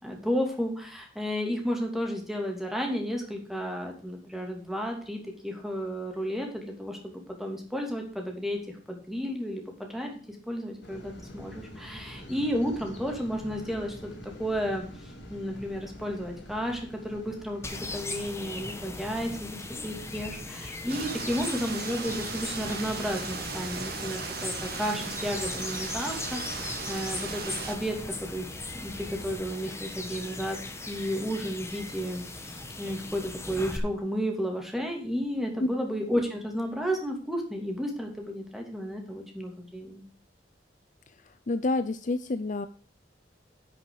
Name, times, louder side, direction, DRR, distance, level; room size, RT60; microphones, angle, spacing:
voice 1, 0.0-8.6 8.9-28.0 28.3-28.5 28.8-30.6 30.9-40.0, equal, ahead, 1 dB, 2.7 m, -32 dB
sound 1, 10.8-29.3, equal, 70° left, 3.5 m, -47 dB
sound 2, 17.6-33.8, left 2 dB, 15° left, 1.3 m, -39 dB
sound 3, 20.9-27.8, right 5 dB, 55° right, 1.9 m, -37 dB
voice 2, 41.5-42.7, left 2 dB, 45° left, 12 dB, 0.6 m, -28 dB
11.0 x 6.2 x 4.9 m, 0.43 s
head